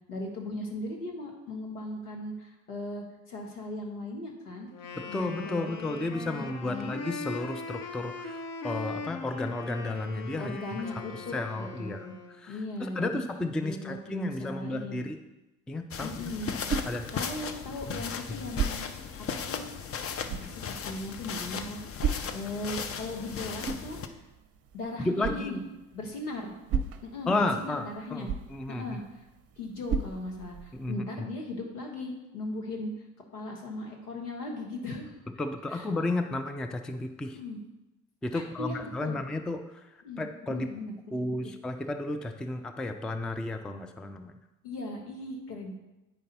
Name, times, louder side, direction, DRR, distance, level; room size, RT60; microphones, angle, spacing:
voice 1, 0.1-4.7 5.1-5.7 6.2-6.9 10.4-12.1 12.5-13.2 13.6-15.1 16.0-16.5 17.1-19.7 20.2-21.8 22.3-24.2 24.7-25.6 25.9-26.5 27.0-28.3 28.7-29.0 29.6-32.9 33.3-35.1 35.7-35.9 37.3-37.6 38.3-39.2 40.0-41.3 44.6-45.7, left 2 dB, 80° left, 1 dB, 1.6 m, -38 dB
Wind instrument woodwind instrument, 4.7-12.4, left 4 dB, 45° left, 1.1 m, -40 dB
voice 2, 4.9-12.1 12.4-15.2 15.7-16.1 16.9-17.1 18.3-18.4 25.0-25.5 27.3-29.0 30.7-31.3 35.4-37.4 38.2-39.8 40.2-40.7 41.1-44.3, left 2 dB, ahead, 7 dB, 0.3 m, -33 dB
sound 1, 15.9-24.1, left 6 dB, 30° left, 0.7 m, -37 dB
sound 2, 16.0-30.9, right 5 dB, 35° right, 0.7 m, -37 dB
8.9 x 5.1 x 4.2 m, 1.0 s
hypercardioid pair, 65°, 45 cm